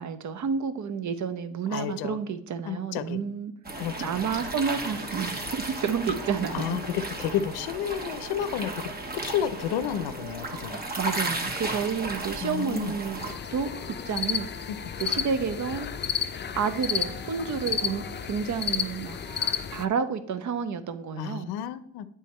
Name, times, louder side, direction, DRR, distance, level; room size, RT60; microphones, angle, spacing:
voice 1, 0.0-3.5 4.0-6.8 11.0-13.2 13.5-13.7 14.1-14.5 15.0-15.9 16.6-18.0 18.3-19.2 19.7-21.5, right 6 dB, 50° right, 11 dB, 0.7 m, -30 dB
voice 2, 1.7-2.2 2.7-3.2 3.8-4.5 6.5-10.8 12.4-12.9 14.7-14.8 21.2-22.1, left 9 dB, 85° left, 14 dB, 0.6 m, -31 dB
sound 1, 3.6-13.3, right 2 dB, 25° right, 1.2 m, -34 dB
sound 2, 7.0-8.9 10.0-11.8 13.1-15.2 16.3-18.3 19.2-19.7, right 2 dB, 85° right, 1.5 m, -50 dB
sound 3, 13.2-19.8, left 8 dB, 30° left, 0.5 m, -32 dB
8.5 x 3.5 x 4.2 m, 0.69 s
supercardioid pair, 65°, 37 cm